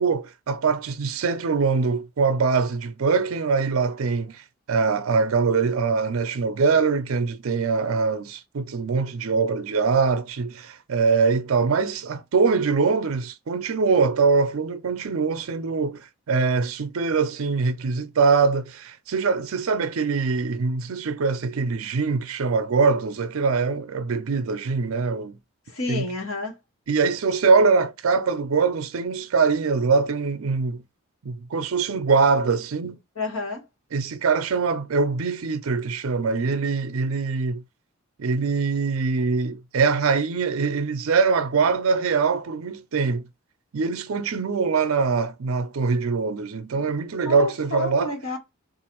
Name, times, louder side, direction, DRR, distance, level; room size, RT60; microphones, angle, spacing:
voice 1, 0.0-25.4 25.9-26.1 26.9-30.8 31.2-33.0 33.9-37.6 38.2-43.3 43.7-48.1, right 4 dB, 75° right, 0.5 m, -23 dB
voice 2, 25.7-26.5 33.1-33.7 47.2-48.4, left 3 dB, 90° left, 1.3 m, -30 dB
3.9 x 2.5 x 2.9 m
head